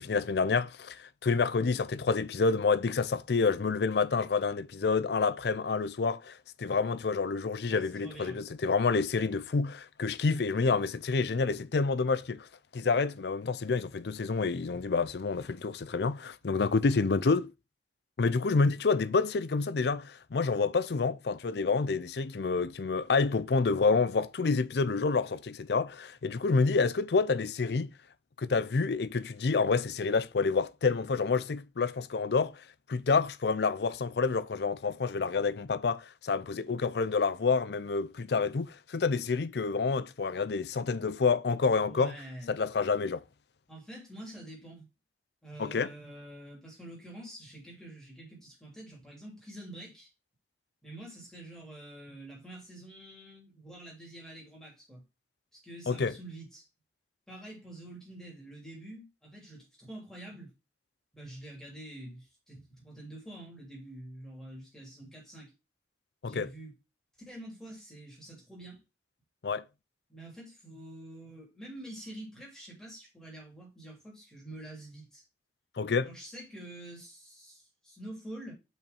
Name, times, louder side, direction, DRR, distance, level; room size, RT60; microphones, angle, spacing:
voice 1, 0.0-12.5 12.7-17.5 18.2-27.9 28.4-32.6 32.9-42.2 42.5-43.2 45.6-45.9 55.9-56.1 66.2-66.5 69.4-69.6 75.8-76.1, left 4 dB, 70° left, 0.5 m, -28 dB
voice 2, 7.7-8.4 41.9-42.6 43.7-44.8 45.4-50.1 50.8-55.0 55.5-56.7 57.3-60.5 61.1-65.5 66.2-66.8 67.3-68.8 70.1-75.2 76.0-78.5, right 1 dB, 5° left, 2.9 m, -47 dB
5.5 x 4.4 x 5.2 m
head